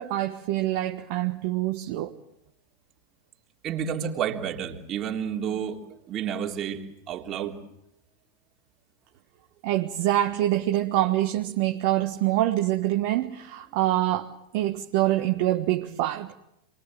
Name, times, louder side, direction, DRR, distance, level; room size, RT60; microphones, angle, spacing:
voice 1, 0.0-2.1 9.6-16.3, right 14 dB, 45° right, 1.4 m, -25 dB
voice 2, 3.6-7.6, right 8 dB, 30° right, 3.4 m, -31 dB
27.5 x 22.5 x 7.8 m
figure-of-eight pair, 90°, 0 cm